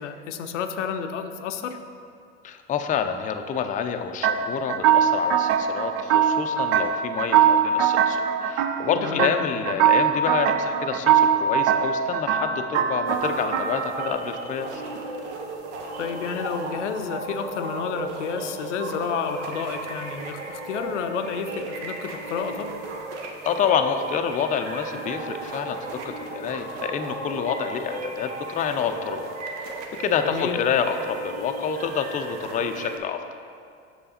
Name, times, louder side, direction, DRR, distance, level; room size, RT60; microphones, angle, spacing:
voice 1, 0.0-1.8 8.9-9.3 16.0-22.7 30.2-30.6, left 7 dB, 85° left, 7 dB, 0.5 m, -30 dB
voice 2, 2.4-14.8 23.4-29.3 30.0-33.2, left 7 dB, 25° left, 6 dB, 0.4 m, -28 dB
sound 1, 4.2-14.1, right 8 dB, 65° right, 0.5 m, -22 dB
sound 2, 13.1-33.0, right 2 dB, 80° right, 0.9 m, -35 dB
6.3 x 5.4 x 4.2 m, 2.3 s
hypercardioid pair, 80°, 35 cm